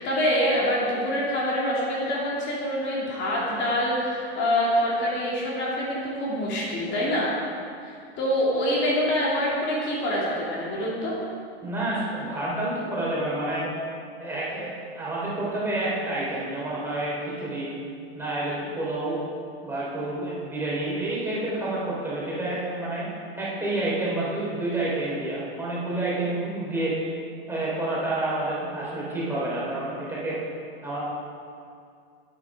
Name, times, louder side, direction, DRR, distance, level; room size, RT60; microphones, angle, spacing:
voice 1, 0.0-7.3 7.8-11.1, equal, 35° left, -5 dB, 2.8 m, -25 dB
voice 2, 11.6-13.7 14.2-17.7 18.1-19.2 19.6-23.1 23.4-26.9 27.5-30.4 30.8-31.0, right 2 dB, 5° right, -7 dB, 3.2 m, -29 dB
11.0 x 9.0 x 4.9 m, 2.4 s
supercardioid pair, 135°, 31 cm